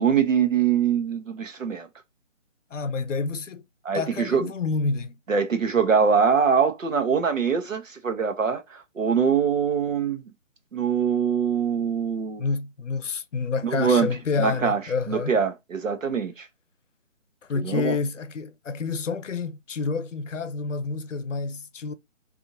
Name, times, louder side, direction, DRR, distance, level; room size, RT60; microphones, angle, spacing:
voice 1, 0.0-1.9 3.8-4.5 5.3-10.2 10.7-12.5 13.6-14.1 14.4-14.8 15.1-16.5 17.6-17.9, right 6 dB, 90° right, 1.0 m, -23 dB
voice 2, 2.7-3.6 3.9-5.2 12.4-15.3 17.5-21.9, left 4 dB, 75° left, 0.6 m, -28 dB
2.7 x 2.6 x 2.6 m
figure-of-eight pair, 150°, 38 cm